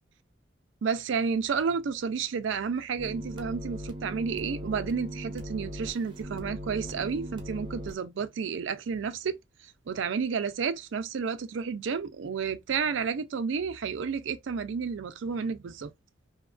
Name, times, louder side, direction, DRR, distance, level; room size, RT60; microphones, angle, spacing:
voice 1, 0.8-9.4 9.6-15.9, right 6 dB, 75° right, 0.4 m, -31 dB
sound 1, 3.0-8.0, equal, 25° right, 0.6 m, -39 dB
2.8 x 2.3 x 2.3 m
head